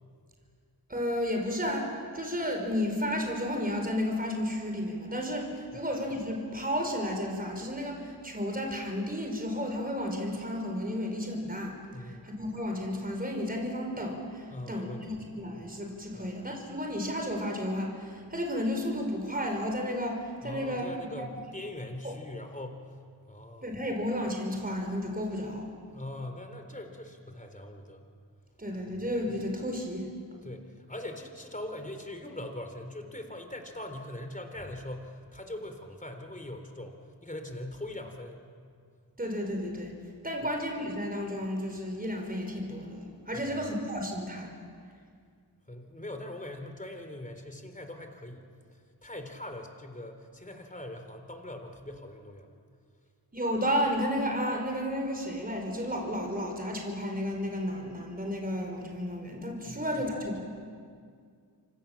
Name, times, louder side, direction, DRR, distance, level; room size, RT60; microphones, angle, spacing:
voice 1, 0.9-11.7 12.2-21.2 22.0-22.1 23.6-25.7 28.6-30.1 39.2-39.9 40.2-44.5 53.3-60.4, equal, 20° right, 2 dB, 4.9 m, -32 dB
voice 2, 11.9-12.3 14.5-15.2 16.1-16.4 20.4-22.8 23.3-23.7 25.9-28.1 28.9-29.0 30.4-38.5 43.3-43.6 45.7-48.5 49.0-52.5 59.7-60.1, left 1 dB, 20° left, 6 dB, 3.7 m, -41 dB
29.0 x 25.0 x 7.3 m, 2.2 s
cardioid pair, 65°, 42 cm